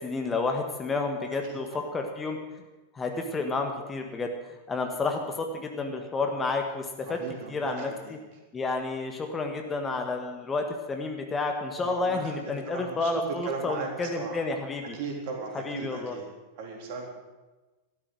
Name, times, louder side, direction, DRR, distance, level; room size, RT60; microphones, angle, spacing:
voice 1, 0.0-2.4 2.9-4.3 4.7-7.2 7.5-8.2 8.5-15.0 15.5-16.2, left 3 dB, 15° left, 4 dB, 1.6 m, -30 dB
voice 2, 1.5-1.9 7.0-8.1 11.8-14.4 14.9-16.2 16.6-17.1, right 4 dB, 45° right, 1 dB, 3.6 m, -37 dB
13.5 x 12.5 x 6.4 m, 1.2 s
figure-of-eight pair, 90°, 0 cm